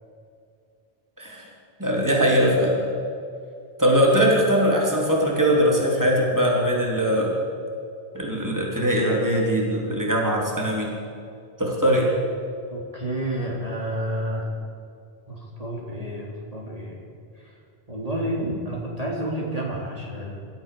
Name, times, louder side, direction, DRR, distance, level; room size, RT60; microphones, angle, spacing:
voice 1, 1.2-1.5 1.8-2.9 3.8-7.3 8.1-10.9 11.6-12.1, equal, 15° right, -2 dB, 3.7 m, -21 dB
voice 2, 12.7-14.5 15.3-17.0 17.4-17.5 17.9-20.4, right 1 dB, 35° right, -3 dB, 3.7 m, -30 dB
27.0 x 14.0 x 7.1 m, 2.4 s
omnidirectional pair, 1.1 m